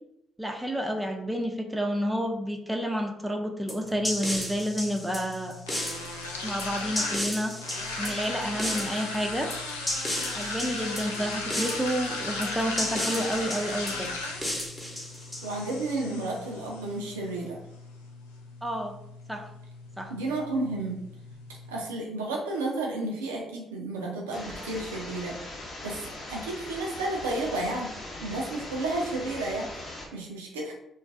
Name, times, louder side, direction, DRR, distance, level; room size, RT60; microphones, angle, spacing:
voice 1, 0.4-5.6 6.4-7.5 8.0-9.5 10.3-14.1 18.6-18.9 19.3-19.5 20.0-20.1, equal, 10° right, 3 dB, 0.4 m, -30 dB
sound 1, 3.7-15.9, left 1 dB, 15° left, 0.9 m, -34 dB
sound 2, 3.8-21.8, left 2 dB, 90° left, 0.3 m, -37 dB
voice 2, 15.4-17.6 20.1-21.0 21.7-25.4 25.8-27.9 28.2-30.7, right 2 dB, 85° right, -1 dB, 0.4 m, -32 dB
sound 3, 24.3-30.1, left 1 dB, 50° left, 0.7 m, -40 dB
2.4 x 2.2 x 2.5 m, 0.79 s
hypercardioid pair, 45°, 0 cm